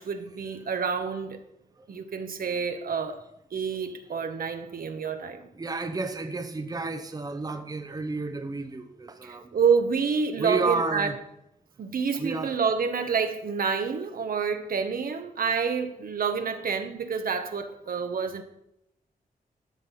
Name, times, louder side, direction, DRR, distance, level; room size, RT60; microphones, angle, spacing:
voice 1, 0.0-1.4 1.9-3.2 3.5-5.5 9.2-11.1 11.8-18.4, right 6 dB, 70° right, 1.1 m, -28 dB
voice 2, 5.5-9.5 10.4-11.2 12.1-12.6 17.7-17.8, right 3 dB, 25° right, 0.8 m, -31 dB
11.5 x 6.0 x 5.6 m
cardioid pair, 85°, 16 cm